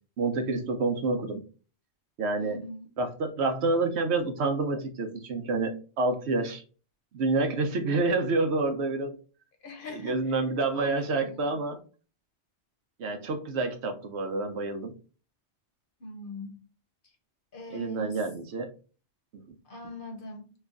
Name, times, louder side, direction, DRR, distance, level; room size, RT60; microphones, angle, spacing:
voice 1, 0.2-1.4 2.2-2.6 3.0-6.6 7.1-9.2 10.0-11.8 13.0-14.9 17.7-18.7 19.3-19.6, right 3 dB, 75° right, 0.9 m, -28 dB
voice 2, 2.4-2.9 9.6-10.4 10.7-11.6 16.0-16.6 17.5-18.2 19.6-20.5, left 2 dB, 55° left, 1.0 m, -42 dB
3.2 x 2.3 x 3.6 m
omnidirectional pair, 1.2 m